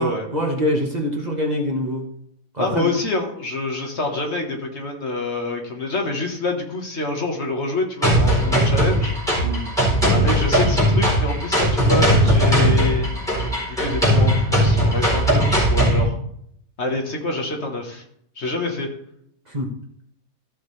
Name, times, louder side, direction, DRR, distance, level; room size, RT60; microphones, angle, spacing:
voice 1, 0.0-2.0 2.5-2.9 9.4-9.6 19.5-19.7, equal, 30° right, -1 dB, 1.2 m, -24 dB
voice 2, 2.6-9.1 10.1-13.1 13.7-16.1 16.8-18.0 18.4-18.9, left 2 dB, 50° left, 2 dB, 1.6 m, -26 dB
sound 1, 8.0-16.0, equal, ahead, 4.1 m, -18 dB
14.0 x 6.3 x 3.3 m, 0.70 s
omnidirectional pair, 1.5 m